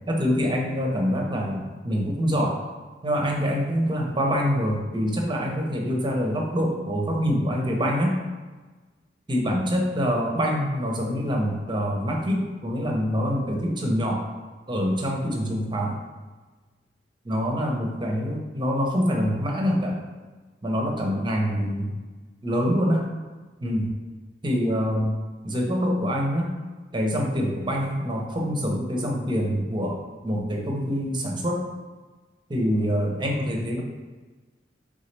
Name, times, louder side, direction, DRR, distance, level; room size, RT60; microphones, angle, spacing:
voice 1, 0.1-2.5 3.0-8.1 9.3-14.2 14.7-16.0 17.2-20.0 20.6-21.9 22.4-23.0 23.6-23.9 24.4-25.2 25.4-26.5 26.9-31.6 32.5-33.8, equal, 25° right, 0 dB, 0.7 m, -25 dB
3.9 x 3.6 x 3.3 m, 1.3 s
head